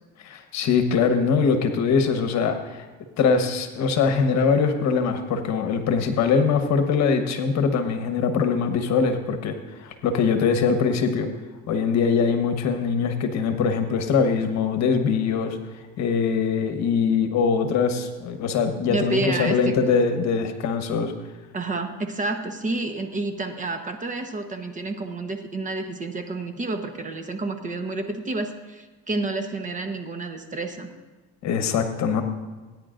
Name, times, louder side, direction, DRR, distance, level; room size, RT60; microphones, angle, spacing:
voice 1, 0.2-2.9 3.2-11.3 11.7-21.1 31.4-32.2, left 5 dB, 55° left, 6 dB, 1.3 m, -22 dB
voice 2, 18.9-19.9 21.5-30.9, right 2 dB, 25° right, 6 dB, 1.1 m, -29 dB
18.5 x 9.7 x 2.6 m, 1.3 s
cardioid pair, 115°, 33 cm